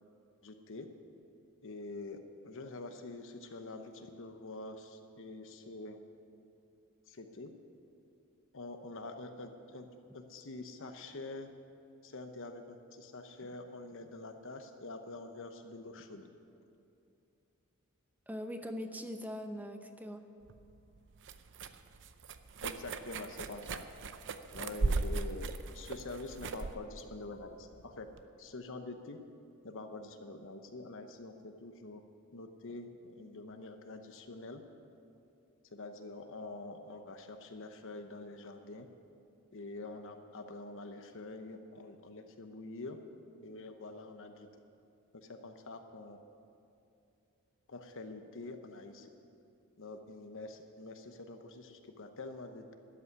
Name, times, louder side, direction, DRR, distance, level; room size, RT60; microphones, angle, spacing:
voice 1, 0.4-0.9 1.6-6.0 7.1-7.5 8.5-9.9 10.1-11.5 12.0-16.3 22.6-23.9 24.5-28.1 28.4-29.2 29.6-32.0 32.3-34.6 35.7-38.9 39.5-43.0 43.4-44.5 45.1-46.2 47.7-49.1 49.8-52.7, left 2 dB, 60° left, 6 dB, 0.9 m, -46 dB
voice 2, 18.3-20.3, equal, 10° right, 6 dB, 0.8 m, -41 dB
sound 1, 20.5-28.2, right 3 dB, 55° right, 0.6 m, -38 dB
12.5 x 8.6 x 9.7 m, 2.6 s
head